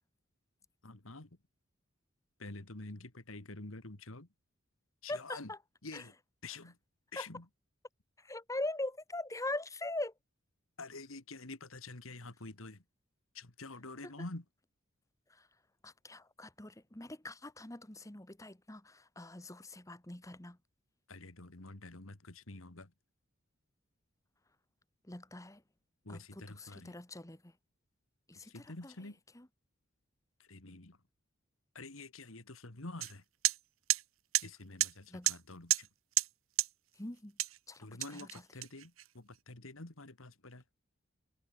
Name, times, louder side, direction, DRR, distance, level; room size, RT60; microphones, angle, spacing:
voice 1, 0.8-1.3 2.4-4.3 5.0-5.5 5.8-6.1 6.4-6.8 7.1-7.5 10.8-12.8 13.3-14.4 21.1-22.9 26.1-27.0 28.4-29.2 30.4-31.0 31.7-33.2 34.4-35.9 37.8-40.6, left 2 dB, 85° left, 2.3 m, -48 dB
voice 2, 5.1-5.6 5.9-6.0 7.2-7.3 8.2-10.1 14.0-14.1 15.8-20.6 25.1-25.6 26.1-27.4 28.3-28.9 29.3-29.5 35.1-35.3 37.0-37.3 37.7-38.3, left 2 dB, 15° left, 1.4 m, -42 dB
sound 1, 33.0-33.1 33.4-33.6 33.9-34.0 34.3-34.5 34.8-34.9 35.3-35.4 35.7-35.9 36.2-36.3 36.6-36.7 37.4-37.6 38.0-39.0, right 15 dB, 85° right, 1.0 m, -30 dB
head